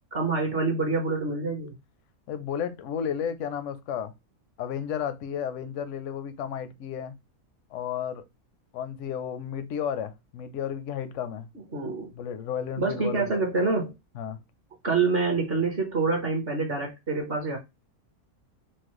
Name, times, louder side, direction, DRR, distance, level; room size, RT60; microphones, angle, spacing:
voice 1, 0.1-1.7 11.7-12.1 12.8-13.9 14.8-17.6, right 4 dB, 45° right, 1.0 m, -26 dB
voice 2, 2.3-4.1 4.6-7.2 7.7-8.2 8.7-11.5 12.1-13.3 14.2-14.4, left 8 dB, 70° left, 0.8 m, -33 dB
4.3 x 2.1 x 3.0 m
omnidirectional pair, 1.6 m